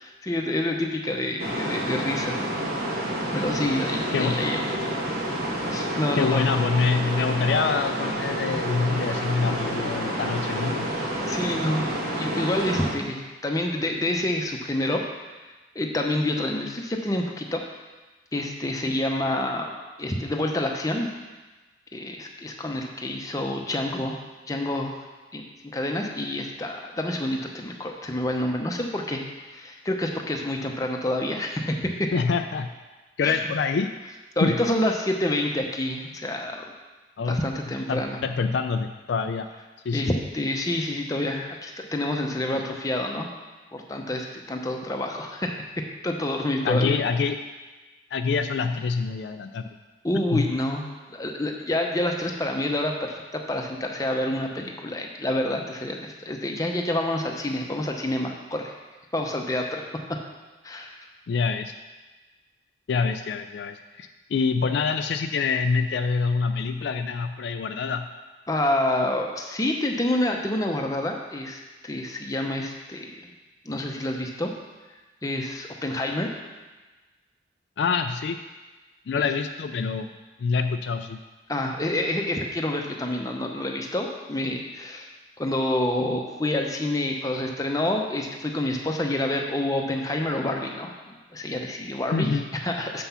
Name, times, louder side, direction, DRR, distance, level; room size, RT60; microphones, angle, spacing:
voice 1, 0.2-2.4 3.3-4.6 5.7-6.4 11.2-15.0 15.7-17.6 18.3-21.1 21.9-24.2 24.5-25.0 25.3-25.4 25.7-29.2 29.5-32.1 33.2-33.4 34.4-36.6 37.3-38.2 39.9-43.3 43.7-45.5 46.0-47.0 50.0-58.7 59.1-59.8 60.6-60.9 68.5-73.3 73.6-74.5 75.2-76.3 79.1-79.3 81.5-85.1 85.4-92.3 92.6-93.0, left 1 dB, 20° left, 2 dB, 0.7 m, -28 dB
sound 1, 1.4-12.9, right 1 dB, 50° right, 1.5 m, -29 dB
voice 2, 4.1-4.5 6.1-10.9 32.1-32.7 33.2-33.9 34.4-34.6 37.2-37.4 37.9-39.5 39.8-40.1 46.6-47.4 48.1-49.7 50.3-50.5 61.3-61.7 62.9-68.1 77.8-78.4 79.1-80.1 80.4-81.2 92.1-92.5, left 5 dB, 65° left, 8 dB, 0.3 m, -26 dB
6.9 x 5.9 x 5.6 m, 1.2 s
head